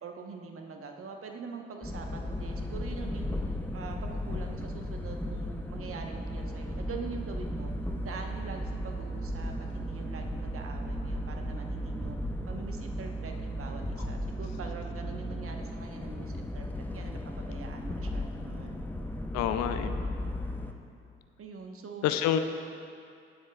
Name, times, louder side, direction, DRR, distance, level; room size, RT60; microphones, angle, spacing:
voice 1, 0.0-3.3 3.7-7.7 8.0-12.2 12.5-18.8 21.4-22.0, right 4 dB, 45° right, 3 dB, 1.1 m, -44 dB
sound 1, 1.8-20.7, equal, 5° left, 0.8 m, -35 dB
voice 2, 19.3-20.0 22.0-22.4, left 10 dB, 65° left, 9 dB, 0.6 m, -27 dB
17.5 x 7.5 x 2.4 m, 2.4 s
figure-of-eight pair, 40°, 30 cm